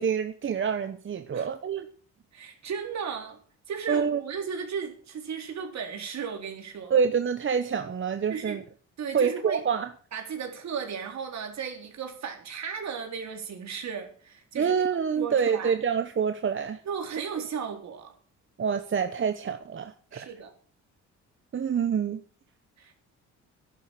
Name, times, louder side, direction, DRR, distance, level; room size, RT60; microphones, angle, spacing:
voice 1, 0.0-1.9 3.9-4.2 6.9-8.6 9.1-9.9 14.5-16.8 18.6-20.3 21.5-22.2, right 6 dB, 40° right, 1.1 m, -27 dB
voice 2, 2.3-3.4 3.7-7.0 8.3-8.6 9.0-9.6 10.1-14.7 15.2-15.7 16.8-18.1 20.1-20.5 22.8-22.9, right 6 dB, 65° right, 4.0 m, -35 dB
12.5 x 11.5 x 6.6 m
cardioid pair, 90°, 30 cm